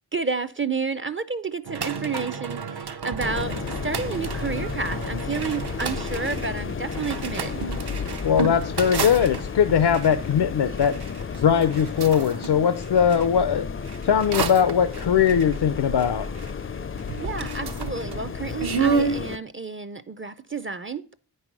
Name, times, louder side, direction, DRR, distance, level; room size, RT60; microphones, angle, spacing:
voice 1, 0.1-7.7 17.2-21.1, right 4 dB, 30° right, 0.5 m, -30 dB
sound 1, 1.7-13.3 13.8-16.7 17.0-19.2, right 5 dB, 70° right, 0.8 m, -31 dB
sound 2, 3.2-19.4, left 6 dB, 35° left, 0.4 m, -33 dB
voice 2, 8.2-10.9 11.4-13.7 14.0-16.3, left 8 dB, 80° left, 0.6 m, -20 dB
8.9 x 5.6 x 6.0 m
wide cardioid pair, 75°, 39 cm